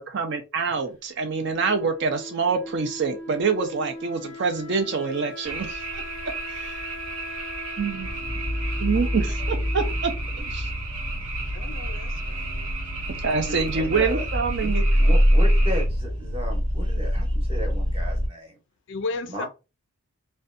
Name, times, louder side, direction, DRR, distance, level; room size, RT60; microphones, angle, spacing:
voice 1, 0.0-6.0 6.5-6.8 7.8-8.1 8.8-10.1 10.4-10.7 13.2-14.8, right 5 dB, 50° right, 0.4 m, -26 dB
Wind instrument woodwind instrument, 1.5-10.3, left 1 dB, 5° left, 0.8 m, -40 dB
sound 1, 5.4-15.9, right 3 dB, 70° right, 1.0 m, -35 dB
sound 2, 8.0-18.3, equal, 90° right, 1.1 m, -25 dB
voice 2, 11.5-12.4 18.9-19.5, left 4 dB, 55° left, 0.3 m, -33 dB
voice 3, 13.5-14.3 14.6-14.7 15.0-18.5 19.3-19.5, equal, 25° right, 0.8 m, -34 dB
2.5 x 2.1 x 2.5 m
head